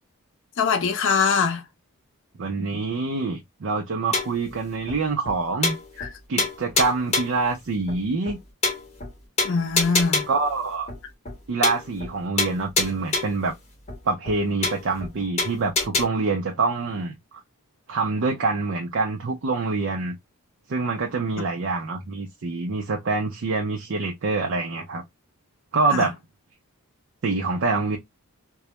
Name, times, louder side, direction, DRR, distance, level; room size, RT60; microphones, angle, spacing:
voice 1, 0.6-1.6 6.0-6.1 9.4-10.3 25.9-26.1, left 5 dB, 55° left, 0.5 m, -22 dB
voice 2, 2.4-5.7 6.3-8.4 10.3-10.9 11.5-13.5 14.0-17.2 17.9-20.2 20.7-25.0 25.7-26.1 27.2-28.0, right 3 dB, 55° right, 0.5 m, -25 dB
sound 1, 4.1-4.5 4.9-5.0 5.2-5.3 5.6-6.1 6.4-7.4 7.9-8.0 8.2-8.3 8.6-9.1 9.4-10.5 10.9-11.0 11.2-11.4 11.6-12.1 12.4-13.4 13.9-14.0 14.2-14.3 14.6-15.1 15.4-16.0, left 3 dB, 30° left, 0.8 m, -26 dB
2.2 x 2.0 x 2.8 m
head